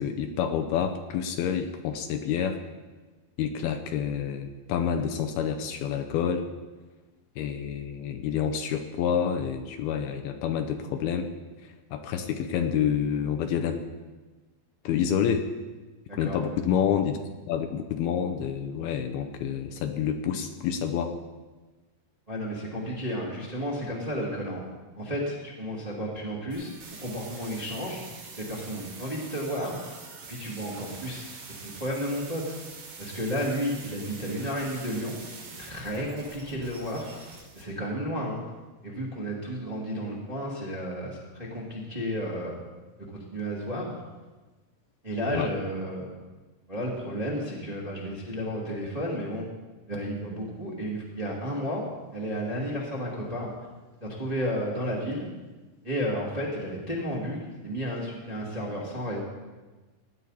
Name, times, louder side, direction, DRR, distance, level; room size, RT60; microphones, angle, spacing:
voice 1, 0.0-2.6 3.4-6.5 7.4-11.3 11.6-13.8 14.9-15.5 16.1-17.2 17.5-21.1 45.3-45.5, left 8 dB, 75° left, 6 dB, 2.5 m, -28 dB
voice 2, 16.1-16.4 22.3-24.6 24.9-26.7 27.0-28.0 28.4-29.8 30.3-31.2 31.6-32.6 33.0-35.2 35.4-37.1 37.5-38.4 38.8-42.5 43.1-43.9 45.0-46.1 46.7-49.4 49.9-51.8 52.1-53.5 54.0-55.2 55.8-59.2, equal, 15° right, -4 dB, 1.3 m, -32 dB
sound 1, 26.5-37.6, right 4 dB, 85° right, 4.6 m, -45 dB
18.0 x 10.0 x 4.2 m, 1.3 s
omnidirectional pair, 4.7 m